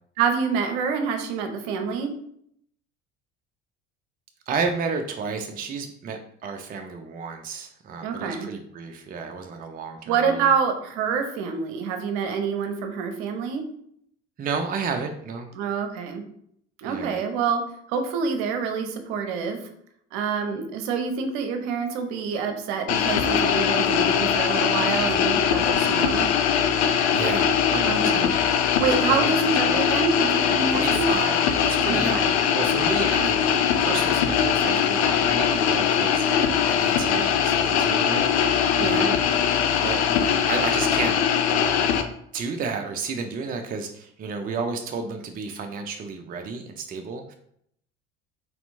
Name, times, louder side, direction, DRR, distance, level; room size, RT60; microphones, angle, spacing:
voice 1, 0.2-2.1 8.0-8.5 10.1-13.6 15.5-16.2 16.8-17.6 17.9-19.6 20.1-26.3 27.8-28.3 28.8-31.1 31.9-32.3 38.8-39.2, right 5 dB, 55° right, 6 dB, 0.8 m, -26 dB
voice 2, 4.5-10.5 14.4-15.5 16.8-17.2 27.1-28.3 28.9-29.3 29.7-29.8 30.7-39.2 39.8-41.2 42.3-47.3, right 4 dB, 25° right, 5 dB, 0.5 m, -32 dB
sound 1, 22.9-42.0, left 8 dB, 70° left, 0.6 m, -21 dB
4.3 x 4.1 x 2.7 m, 0.69 s
figure-of-eight pair, 60°, 35 cm